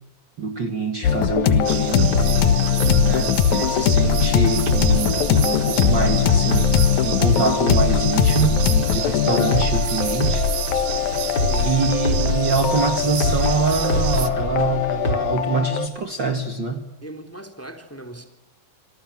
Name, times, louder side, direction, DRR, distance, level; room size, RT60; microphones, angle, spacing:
voice 1, 0.4-2.2 3.0-6.7 7.0-10.4 11.6-16.8, right 4 dB, 40° right, 6 dB, 2.4 m, -25 dB
sound 1, 1.0-15.9, left 9 dB, 75° left, 2.8 m, -21 dB
sound 2, 1.3-15.1, left 1 dB, 30° left, 4.8 m, -25 dB
sound 3, 1.6-14.3, right 12 dB, 70° right, 2.6 m, -31 dB
voice 2, 11.5-11.8 17.0-18.3, right 1 dB, 5° left, 6 dB, 2.9 m, -38 dB
27.5 x 27.0 x 7.5 m, 0.87 s
omnidirectional pair, 3.5 m